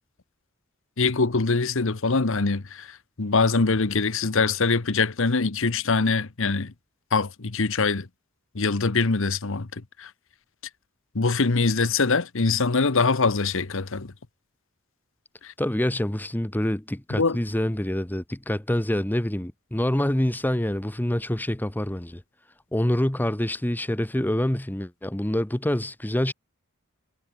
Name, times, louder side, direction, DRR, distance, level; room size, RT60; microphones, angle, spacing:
voice 1, 1.0-2.9 3.2-6.7 7.1-8.1 8.5-9.7 10.0-10.1 11.1-14.1 17.1-17.4, left 4 dB, 65° left, 1.1 m, -23 dB
voice 2, 15.6-22.2 22.7-26.3, left 1 dB, 10° left, 0.8 m, -26 dB
head